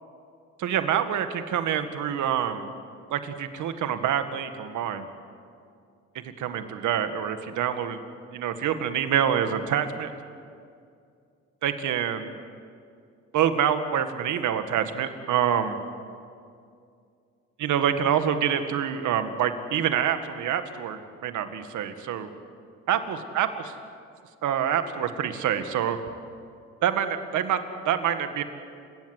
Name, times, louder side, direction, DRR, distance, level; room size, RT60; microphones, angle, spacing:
voice 1, 0.6-2.7 3.1-5.1 6.4-8.0 8.3-10.1 11.6-12.3 13.3-15.8 17.6-22.3 22.9-23.5 24.4-26.0 26.8-28.4, right 9 dB, 80° right, 9 dB, 1.8 m, -26 dB
29.0 x 17.0 x 8.2 m, 2.4 s
cardioid pair, 90°, 30 cm